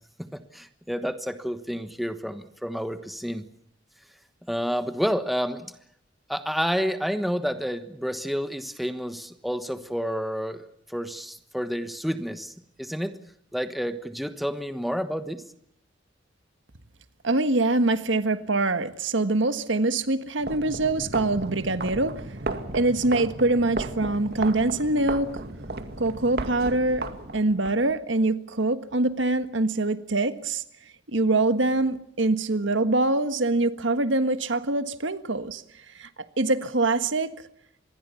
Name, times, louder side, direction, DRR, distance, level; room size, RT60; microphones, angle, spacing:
voice 1, 0.2-3.4 4.5-5.7 6.3-13.1 13.5-15.4, equal, ahead, 9 dB, 1.2 m, -30 dB
voice 2, 17.2-22.1 22.7-25.3 26.0-27.1 27.3-30.6 31.1-35.6 35.9-36.1 36.4-37.3, right 2 dB, 75° right, 10 dB, 1.5 m, -24 dB
sound 1, 20.4-27.7, right 2 dB, 55° right, 2.2 m, -34 dB
26.5 x 21.0 x 7.1 m, 0.72 s
head